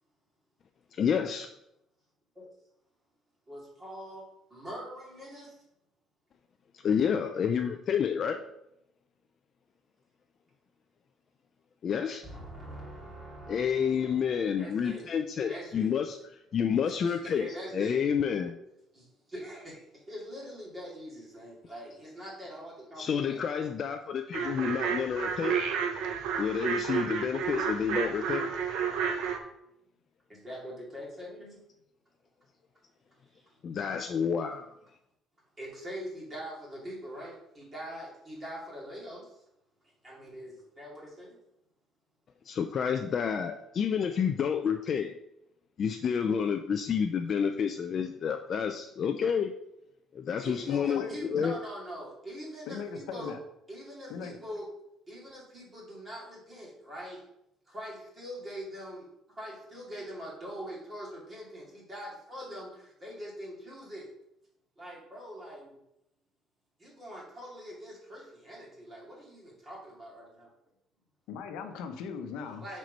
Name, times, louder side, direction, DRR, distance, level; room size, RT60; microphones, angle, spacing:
voice 1, 0.9-1.5 6.7-8.4 11.8-12.2 13.5-16.2 16.5-17.5 17.7-18.6 23.0-25.6 26.4-28.5 33.6-34.7 42.5-45.1 45.8-49.5 50.1-51.0 51.3-51.5, left 7 dB, 35° left, 6 dB, 0.3 m, -29 dB
voice 2, 3.5-4.2 4.5-5.6 12.2-15.1 15.5-15.9 16.8-18.1 18.9-23.7 24.4-24.9 30.3-31.6 33.3-33.6 35.6-39.4 39.8-41.4 50.4-53.3 53.7-54.7 55.1-57.2 57.7-59.0 59.4-64.1 64.8-65.8 66.8-70.5 72.6-72.8, equal, 20° right, -5 dB, 2.5 m, -43 dB
sound 1, 24.3-29.4, right 6 dB, 70° right, 0.9 m, -31 dB
voice 3, 50.7-51.6 52.7-53.4 54.1-54.4 71.3-72.6, left 6 dB, 85° left, 6 dB, 0.8 m, -39 dB
6.2 x 4.3 x 5.2 m, 0.81 s
cardioid pair, 170°, 0 cm